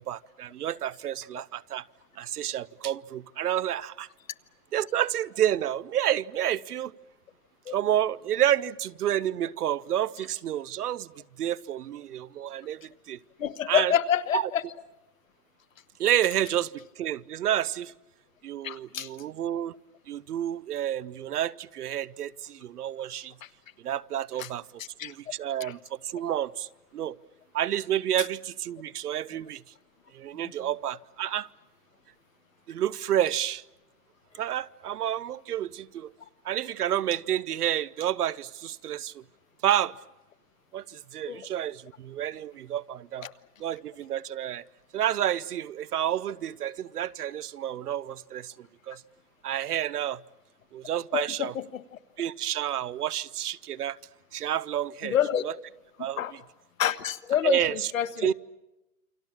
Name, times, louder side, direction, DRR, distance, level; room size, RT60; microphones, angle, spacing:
voice 1, 0.0-1.9 2.2-4.1 4.7-6.9 7.7-13.2 13.7-13.9 14.3-14.4 16.0-17.9 18.4-19.7 20.1-23.3 23.8-27.2 27.5-29.7 30.1-31.5 32.7-33.6 34.4-36.1 36.4-39.2 39.6-40.0 40.7-43.3 43.6-44.6 44.9-49.0 49.4-50.2 50.7-51.5 52.2-54.0 54.3-55.1 55.4-55.5 56.0-56.4 57.4-57.9 58.2-58.3, right 11 dB, 80° right, 0.8 m, -30 dB
voice 2, 13.4-14.6 18.6-19.1 24.4-24.5 25.0-25.1 25.6-25.7 41.3-41.5 43.2-43.3 51.1-51.8 55.0-55.4 56.2-56.3 56.8-58.3, left 10 dB, 60° left, 1.2 m, -27 dB
28.5 x 24.0 x 7.3 m
hypercardioid pair, 170°, 45 cm